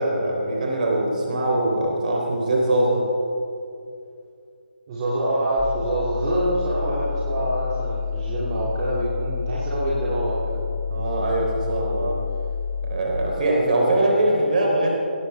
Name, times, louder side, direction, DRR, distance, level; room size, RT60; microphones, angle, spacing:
voice 1, 0.0-3.0 10.9-12.2 12.8-14.9, right 1 dB, 50° right, 0 dB, 3.6 m, -22 dB
voice 2, 4.9-10.6, right 1 dB, 30° right, -7 dB, 2.5 m, -25 dB
sound 1, 5.6-13.0, left 6 dB, ahead, 2.1 m, -29 dB
17.5 x 15.0 x 3.5 m, 2.5 s
figure-of-eight pair, 150°, 6 cm